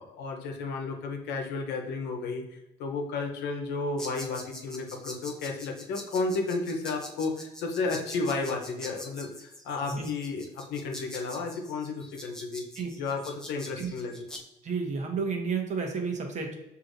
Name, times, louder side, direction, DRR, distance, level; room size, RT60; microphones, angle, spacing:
voice 1, 0.0-2.4 2.8-12.6 12.9-14.2, left 3 dB, 85° left, 2 dB, 0.9 m, -32 dB
sound 1, 4.0-14.4, left 1 dB, 5° left, 0.7 m, -44 dB
voice 2, 14.6-16.5, right 5 dB, 45° right, 2 dB, 0.9 m, -31 dB
6.5 x 2.7 x 2.6 m, 0.90 s
cardioid pair, 110°, 17 cm